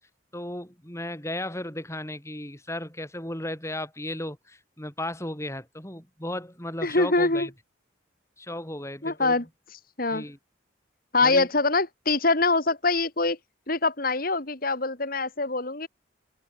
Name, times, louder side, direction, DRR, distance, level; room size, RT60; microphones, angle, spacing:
voice 1, 0.3-7.5 8.4-9.4 10.1-10.4 11.2-11.5, left 1 dB, 15° left, 7.0 m, -35 dB
voice 2, 6.8-7.5 9.0-9.4 10.0-10.2 11.1-13.4 13.7-15.9, left 3 dB, 50° left, 3.0 m, -24 dB
head